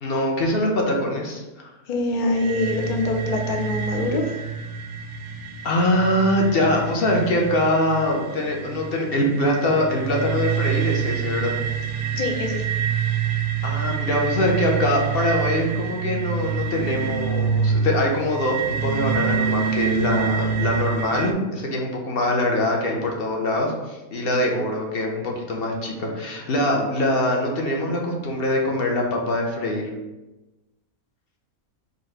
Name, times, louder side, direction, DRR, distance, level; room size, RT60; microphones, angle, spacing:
voice 1, 0.0-1.7 5.6-11.6 13.6-29.9, left 1 dB, 50° left, 0 dB, 0.9 m, -23 dB
voice 2, 1.9-4.4 12.1-12.7, left 2 dB, 80° left, 1 dB, 0.4 m, -24 dB
sound 1, 2.4-21.3, right 7 dB, 65° right, 0.8 m, -27 dB
4.1 x 2.6 x 4.5 m, 1.1 s
omnidirectional pair, 1.5 m